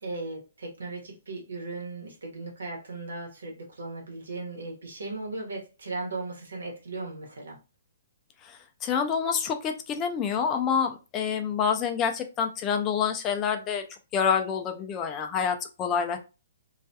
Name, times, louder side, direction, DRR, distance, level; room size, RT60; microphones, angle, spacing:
voice 1, 0.0-7.6, right 3 dB, 85° right, 1.0 m, -37 dB
voice 2, 8.4-13.8 14.1-16.2, left 7 dB, 20° left, 0.3 m, -27 dB
2.3 x 2.2 x 2.6 m
hypercardioid pair, 150°, 0 cm